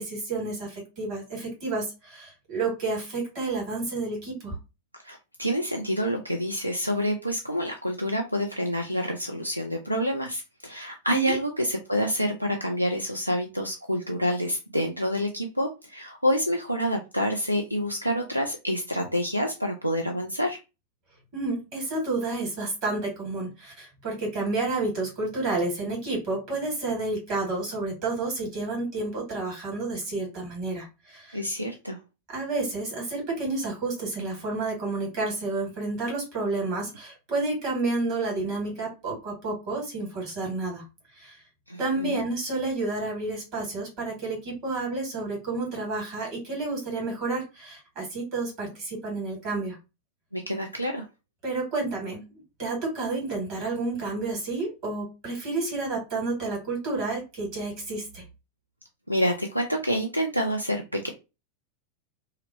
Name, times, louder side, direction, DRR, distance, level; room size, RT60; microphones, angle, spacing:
voice 1, 0.0-4.5 11.1-11.3 21.3-31.4 32.3-40.8 41.1-41.4 41.8-49.8 51.4-52.2 52.6-58.2, right 3 dB, 40° right, -1 dB, 1.6 m, -30 dB
voice 2, 4.9-20.6 31.3-32.0 41.7-42.2 50.3-51.1 59.1-61.1, equal, 90° right, 3 dB, 0.3 m, -27 dB
2.7 x 2.0 x 2.6 m, 0.27 s
figure-of-eight pair, 90°, 0 cm